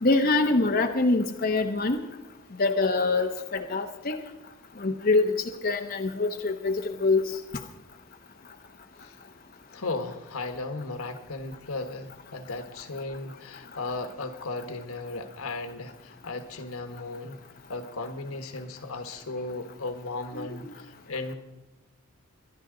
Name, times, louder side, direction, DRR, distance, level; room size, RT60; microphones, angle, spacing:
voice 1, 0.0-2.0 2.6-4.2 4.8-5.3 5.6-7.2 20.3-20.6, left 3 dB, 45° left, 4 dB, 0.9 m, -24 dB
voice 2, 9.7-17.4 17.7-21.3, left 3 dB, 85° left, 8 dB, 1.3 m, -36 dB
23.5 x 10.5 x 3.9 m, 1.0 s
head